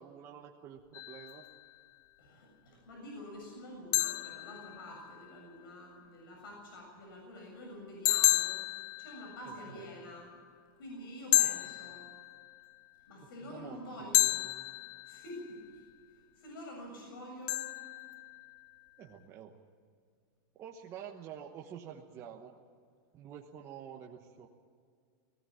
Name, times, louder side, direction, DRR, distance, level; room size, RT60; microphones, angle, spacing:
voice 1, 0.0-1.5 9.4-9.9 13.2-13.8 14.1-14.2 19.0-19.6 20.5-22.6 23.1-24.5, right 9 dB, 25° right, 0 dB, 1.1 m, -48 dB
sound 1, 0.9-1.7 3.9-5.3 8.0-9.8 11.3-12.7 14.1-15.5 17.5-18.7, left 16 dB, 30° left, 0.5 m, -32 dB
voice 2, 2.2-8.6 9.0-10.3 10.8-12.1 13.1-14.5 15.0-15.8 16.4-17.7, left 1 dB, 85° left, 0 dB, 7.3 m, -47 dB
19.0 x 17.0 x 8.8 m, 2.1 s
supercardioid pair, 165°, 11 cm